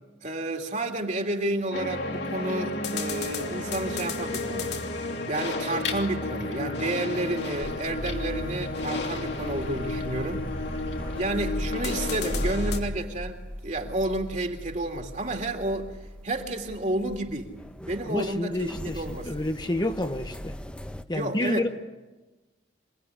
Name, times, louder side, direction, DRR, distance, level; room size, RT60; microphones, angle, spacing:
voice 1, 0.2-4.7 5.3-10.4 11.1-15.9 16.2-17.5 17.8-19.3 21.1-21.7, right 1 dB, 45° right, 3.0 m, -31 dB
sound 1, 1.7-12.8, left 2 dB, 75° left, 2.9 m, -32 dB
sound 2, 7.6-21.0, equal, 5° left, 0.9 m, -37 dB
voice 2, 18.1-20.6 21.1-21.7, left 1 dB, 25° left, 1.1 m, -29 dB
27.5 x 19.5 x 10.0 m
head